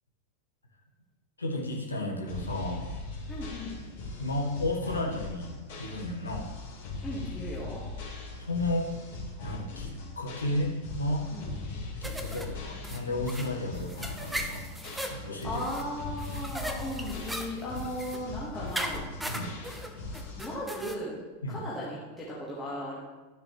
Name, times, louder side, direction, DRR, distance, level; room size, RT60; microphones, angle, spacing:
voice 1, 1.4-2.9 4.2-6.4 8.4-8.9 9.4-11.2 12.0-14.6 15.1-15.6 19.3-19.5 21.4-21.6, left 1 dB, 75° left, 0 dB, 1.4 m, -33 dB
sound 1, 2.3-20.6, left 3 dB, 55° left, 2.9 m, -40 dB
voice 2, 3.3-3.8 7.0-7.8 11.3-11.5 15.4-19.0 20.4-21.2 21.5-23.0, equal, 15° left, -7 dB, 1.9 m, -36 dB
sound 2, 12.0-21.0, equal, 5° right, 0.8 m, -39 dB
12.5 x 6.8 x 3.3 m, 1.3 s
figure-of-eight pair, 90°, 0 cm